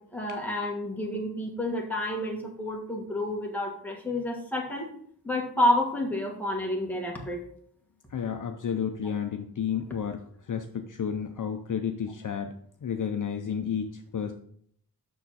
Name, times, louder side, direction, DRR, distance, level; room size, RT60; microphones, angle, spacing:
voice 1, 0.1-4.9 5.2-7.4, left 1 dB, 5° left, -1 dB, 1.5 m, -29 dB
voice 2, 8.1-10.2 10.5-12.5 12.8-14.3, left 7 dB, 50° left, 5 dB, 0.6 m, -31 dB
7.1 x 6.2 x 4.1 m, 0.64 s
wide cardioid pair, 155°, 39 cm